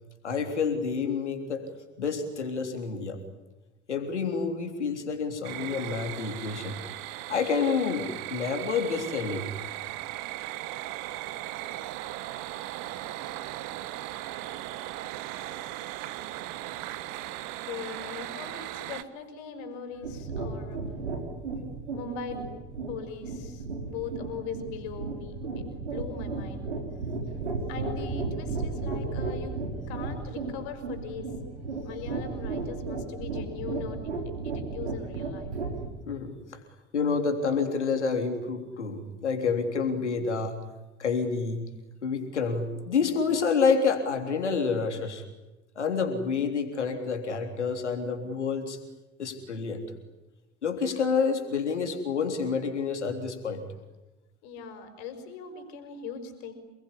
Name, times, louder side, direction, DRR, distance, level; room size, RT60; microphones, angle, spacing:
voice 1, 0.2-1.6 2.0-3.2 3.9-6.8 7.3-9.5 15.5-15.6 36.1-36.6 36.9-40.6 41.0-41.7 42.0-45.2 45.8-48.8 49.2-49.8 50.6-53.6, left 5 dB, 85° left, 6 dB, 3.5 m, -28 dB
sound 1, 5.4-19.0, right 15 dB, 65° right, 1.5 m, -37 dB
voice 2, 17.7-20.8 21.9-22.4 22.9-26.8 27.7-29.5 29.9-31.3 31.8-35.5 54.4-56.5, left 5 dB, 70° left, 8 dB, 5.5 m, -40 dB
sound 2, 20.0-35.9, right 3 dB, 85° right, 4.4 m, -34 dB
29.0 x 21.0 x 10.0 m, 1.1 s
figure-of-eight pair, 55°, 34 cm